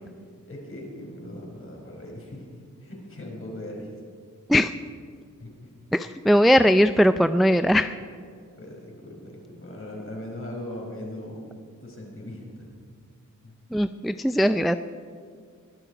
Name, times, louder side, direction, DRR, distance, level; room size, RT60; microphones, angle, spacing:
voice 1, 0.5-3.9 5.4-5.7 6.8-7.0 7.4-7.8 8.5-12.7 13.4-13.5, left 1 dB, 45° left, -1 dB, 4.9 m, -39 dB
voice 2, 5.9-8.0 13.7-14.8, equal, ahead, 10 dB, 0.4 m, -19 dB
22.0 x 11.5 x 5.0 m, 2.1 s
wide cardioid pair, 85°, 32 cm